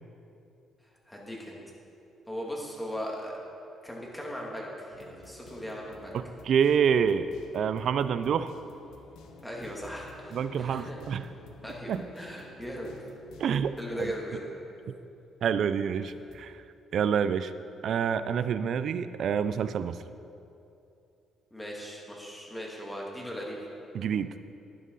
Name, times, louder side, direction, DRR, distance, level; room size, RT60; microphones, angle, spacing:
voice 1, 1.1-1.6 2.3-3.4 3.8-6.2 9.4-11.0 11.6-12.9 13.8-14.4 21.5-23.6, equal, 10° left, -3 dB, 2.4 m, -38 dB
sound 1, 4.9-15.0 15.4-15.5 15.9-16.5, left 3 dB, 90° left, 1.0 m, -52 dB
voice 2, 6.1-7.3 7.5-8.5 10.3-11.3 11.9-12.1 13.4-14.1 15.4-16.6 16.9-17.5 17.8-20.0 23.9-24.3, right 7 dB, 65° right, 12 dB, 0.4 m, -27 dB
11.0 x 10.0 x 4.0 m, 2.7 s
cardioid pair, 90°, 0 cm